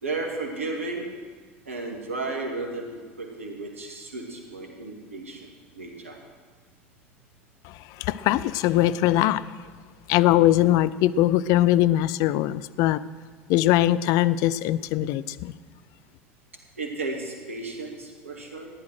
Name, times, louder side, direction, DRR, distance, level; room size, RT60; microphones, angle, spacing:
voice 1, 0.0-1.1 1.7-6.2 16.8-18.7, right 3 dB, 85° right, 2 dB, 2.1 m, -34 dB
voice 2, 7.6-9.6 10.1-13.0 13.5-15.5, left 14 dB, 55° left, 17 dB, 0.5 m, -21 dB
14.0 x 11.0 x 6.3 m, 1.5 s
hypercardioid pair, 75°, 7 cm